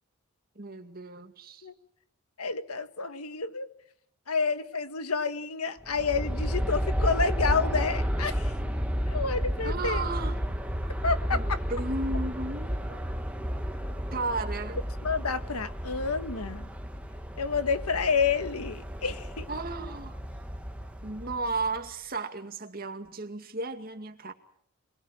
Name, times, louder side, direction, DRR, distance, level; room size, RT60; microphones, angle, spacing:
voice 1, 0.6-1.7 9.6-10.4 11.3-13.0 14.1-14.8 19.5-20.2 21.0-24.3, right 3 dB, 40° right, 2.2 m, -34 dB
voice 2, 2.4-3.7 4.3-8.5 9.1-10.0 11.0-11.6 15.0-16.7 17.4-19.5, left 5 dB, 85° left, 1.5 m, -29 dB
Aircraft, 5.8-21.9, equal, 5° right, 1.4 m, -32 dB
26.0 x 20.5 x 7.5 m
head